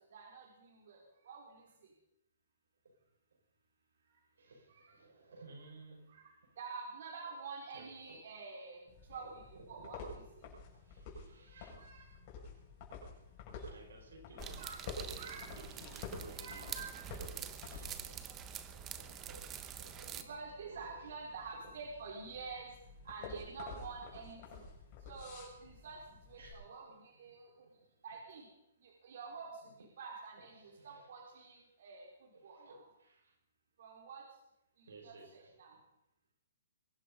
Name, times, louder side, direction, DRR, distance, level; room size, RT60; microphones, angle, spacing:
voice 1, 0.1-1.7 4.7-4.9 6.1-8.8 9.1-9.3 9.7-10.2 11.5-12.1 13.5-13.7 14.6-14.8 15.2-15.4 16.4-17.3 20.1-22.7 23.0-24.7 25.1-26.0 26.3-27.7 28.0-28.5 28.8-32.1 32.4-32.8 33.8-34.2 34.8-35.7, right 5 dB, 60° right, -1 dB, 4.7 m, -48 dB
voice 2, 4.4-6.1 7.2-7.3 7.7-8.2 9.1-9.9 10.8-11.8 13.7-16.7 17.1-21.6 26.4-26.7 27.2-27.9 29.6-29.7 30.6-31.1 32.3-33.4 34.9-35.8, right 3 dB, 90° right, 2 dB, 6.1 m, -57 dB
sound 1, 8.9-26.5, left 3 dB, 35° left, 7.5 m, -50 dB
sound 2, 14.4-20.2, right 10 dB, 20° right, 1.1 m, -46 dB
23.0 x 11.5 x 5.5 m, 0.86 s
hypercardioid pair, 155°, 0 cm